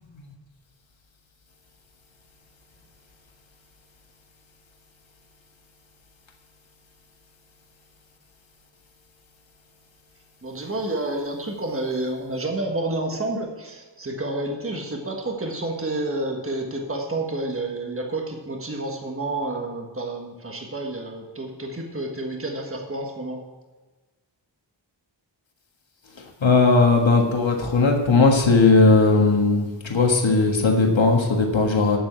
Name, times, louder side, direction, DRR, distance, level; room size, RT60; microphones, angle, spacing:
voice 1, 10.4-23.4, right 2 dB, 30° right, 1 dB, 1.6 m, -29 dB
voice 2, 26.4-32.0, left 3 dB, 90° left, 1 dB, 1.6 m, -18 dB
7.9 x 7.5 x 8.7 m, 1.3 s
wide cardioid pair, 80°, 45 cm